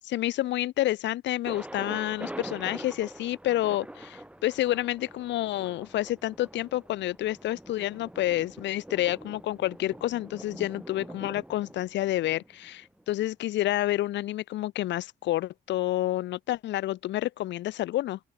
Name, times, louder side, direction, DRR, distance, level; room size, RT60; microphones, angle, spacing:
voice 1, 0.1-18.2, left 14 dB, 65° left, 0.4 m, -29 dB
Thunder, 1.5-13.3, right 1 dB, 5° right, 2.2 m, -44 dB
open air
cardioid pair, 90°, 20 cm